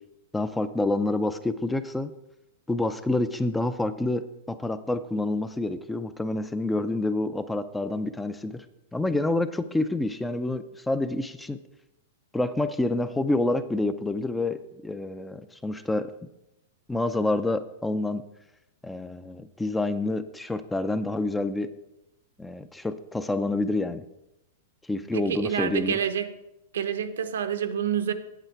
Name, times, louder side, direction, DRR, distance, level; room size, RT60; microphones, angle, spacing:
voice 1, 0.3-2.1 2.7-8.7 8.9-11.6 12.3-16.1 16.9-18.2 18.8-21.7 22.4-24.1 24.9-26.0, left 2 dB, 5° left, 12 dB, 0.4 m, -28 dB
voice 2, 25.1-26.3 26.7-28.1, right 8 dB, 85° right, 9 dB, 0.8 m, -28 dB
8.2 x 7.8 x 4.5 m, 0.90 s
hypercardioid pair, 135°, 0 cm